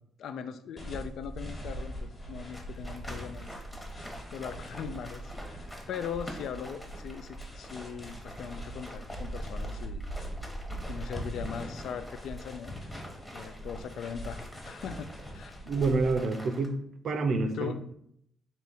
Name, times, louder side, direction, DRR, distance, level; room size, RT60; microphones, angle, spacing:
voice 1, 0.2-3.6 4.3-10.0 10.9-12.8 13.3-15.6 17.5-17.8, left 7 dB, 75° left, 11 dB, 0.3 m, -40 dB
sound 1, 0.8-16.2, right 1 dB, 25° left, 1.2 m, -41 dB
sound 2, 2.5-16.7, equal, 5° left, 0.9 m, -47 dB
voice 2, 15.7-16.8 17.0-17.9, right 3 dB, 55° right, 7 dB, 0.5 m, -28 dB
3.5 x 2.8 x 4.1 m, 0.71 s
cardioid pair, 90°, 0 cm